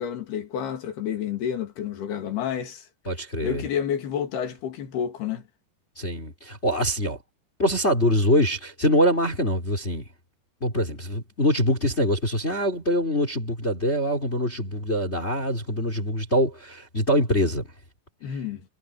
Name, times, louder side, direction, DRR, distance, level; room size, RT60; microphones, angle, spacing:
voice 1, 0.0-2.9 3.4-5.4 18.2-18.6, left 8 dB, 80° left, 4.6 m, -29 dB
voice 2, 3.1-3.6 6.0-7.2 7.6-10.1 10.6-17.7, equal, 15° left, 3.8 m, -24 dB
omnidirectional pair, 4.4 m